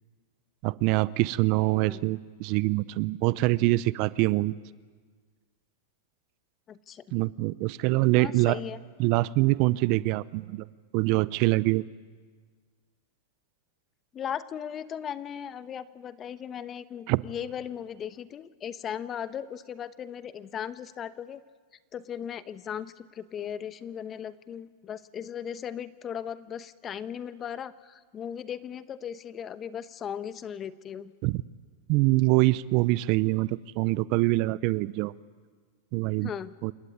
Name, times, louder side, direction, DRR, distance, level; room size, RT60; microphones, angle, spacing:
voice 1, 0.6-4.6 7.1-8.6 9.0-10.7 10.9-11.8 17.1-17.2 31.2-31.4 31.9-35.1 35.9-36.3 36.6-36.7, right 20 dB, 50° right, 19 dB, 0.6 m, -24 dB
voice 2, 6.7-7.0 8.2-8.8 14.1-21.4 21.9-31.1 36.2-36.5, left 8 dB, 30° left, 14 dB, 1.0 m, -37 dB
28.0 x 16.0 x 9.5 m, 1.5 s
hypercardioid pair, 115°, 0 cm